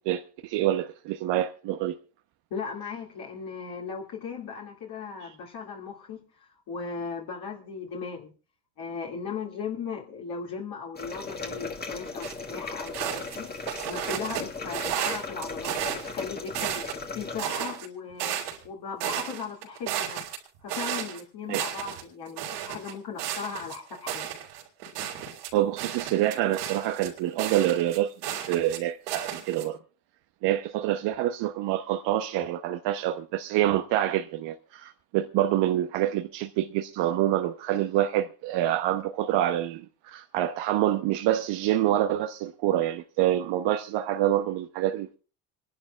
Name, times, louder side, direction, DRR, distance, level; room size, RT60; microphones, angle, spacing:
voice 1, 0.1-2.0 21.5-21.6 25.5-28.1 28.5-29.8 30.4-45.2, right 13 dB, 60° right, 1.0 m, -26 dB
voice 2, 2.5-8.3 8.8-13.5 13.8-16.8 17.1-18.4 18.6-20.2 20.6-24.3, left 5 dB, 50° left, 2.5 m, -37 dB
sound 1, 11.0-17.4, left 3 dB, 20° left, 1.7 m, -37 dB
sound 2, 12.2-12.3 12.9-14.4 14.7-16.1 16.5-17.0 17.4-18.7 19.0-21.2 21.5-22.0 22.4-28.8 29.1-29.6, right 10 dB, 80° right, 3.9 m, -33 dB
27.0 x 11.5 x 2.4 m
supercardioid pair, 80°, 47 cm